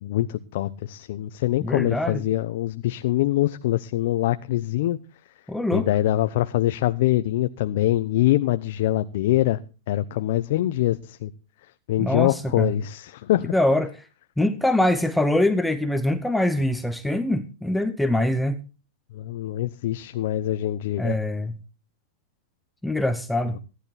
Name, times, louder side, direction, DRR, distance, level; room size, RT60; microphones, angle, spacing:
voice 1, 0.0-5.0 5.7-9.6 9.9-11.3 11.9-13.5 19.1-21.2, left 14 dB, 60° left, 0.8 m, -24 dB
voice 2, 1.6-2.2 5.5-5.9 12.0-12.7 13.5-14.0 14.4-18.6 21.0-21.6 22.8-23.6, left 1 dB, 5° left, 0.9 m, -23 dB
17.0 x 11.5 x 4.2 m
supercardioid pair, 150°, 0 cm